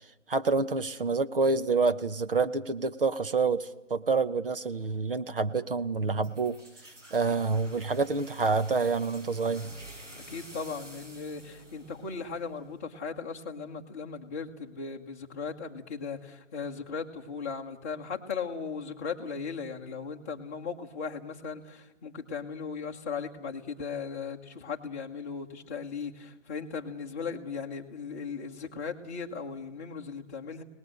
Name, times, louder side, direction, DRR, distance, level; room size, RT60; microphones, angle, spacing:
voice 1, 0.3-6.6 7.1-9.7, right 4 dB, 50° right, 11 dB, 1.0 m, -27 dB
sound 1, 6.2-12.8, right 1 dB, 85° right, 7.2 m, -50 dB
voice 2, 10.1-30.6, left 5 dB, 15° left, -2 dB, 1.0 m, -37 dB
30.0 x 19.0 x 6.6 m, 0.97 s
figure-of-eight pair, 155°, 36 cm